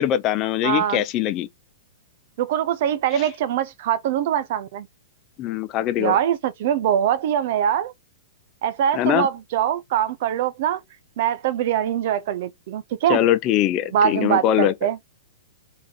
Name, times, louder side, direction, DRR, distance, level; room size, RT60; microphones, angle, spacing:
voice 1, 0.0-1.5 5.4-6.2 8.9-9.3 13.1-14.7, left 11 dB, 35° left, 0.5 m, -22 dB
voice 2, 0.6-1.0 2.4-4.9 6.0-7.9 8.6-10.8 11.2-13.2 13.9-15.0, right 10 dB, 55° right, 0.7 m, -23 dB
3.8 x 2.9 x 3.9 m
hypercardioid pair, 135°, 0 cm